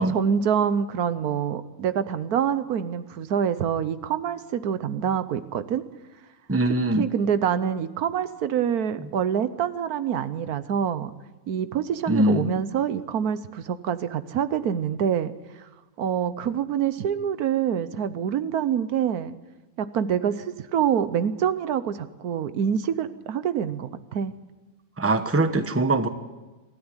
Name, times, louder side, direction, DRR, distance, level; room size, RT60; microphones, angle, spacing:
voice 1, 0.1-5.8 7.0-11.1 11.5-15.3 16.0-19.4 19.8-24.3, right 8 dB, 85° right, 13 dB, 1.4 m, -26 dB
voice 2, 6.5-7.1 12.1-12.5 25.0-26.1, right 2 dB, 10° right, 9 dB, 1.0 m, -22 dB
25.0 x 13.0 x 9.8 m, 1.2 s
omnidirectional pair, 1.6 m